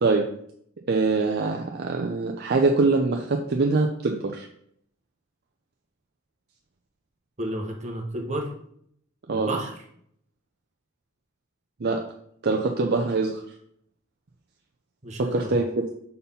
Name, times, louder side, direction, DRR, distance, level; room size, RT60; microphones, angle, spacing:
voice 1, 0.9-4.5 9.3-9.5 11.8-12.0 12.4-13.4 15.2-15.9, right 3 dB, 50° right, 2 dB, 0.6 m, -23 dB
voice 2, 7.4-8.5 9.3-9.7 15.0-15.6, right 1 dB, 35° right, 1 dB, 1.2 m, -31 dB
5.4 x 4.3 x 5.5 m, 0.68 s
head